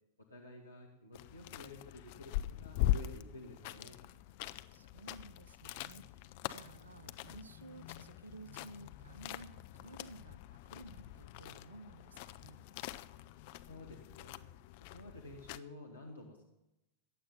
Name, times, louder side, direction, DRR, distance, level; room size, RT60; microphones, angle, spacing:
voice 1, 0.2-4.0 13.7-14.4 14.9-16.4, left 2 dB, 80° left, 0 dB, 1.9 m, -51 dB
sound 1, 1.1-15.6, left 14 dB, 50° left, 0.5 m, -42 dB
voice 2, 4.7-12.6, right 2 dB, 75° right, 15 dB, 0.9 m, -54 dB
14.5 x 10.0 x 5.5 m, 0.90 s
figure-of-eight pair, 90°, 0 cm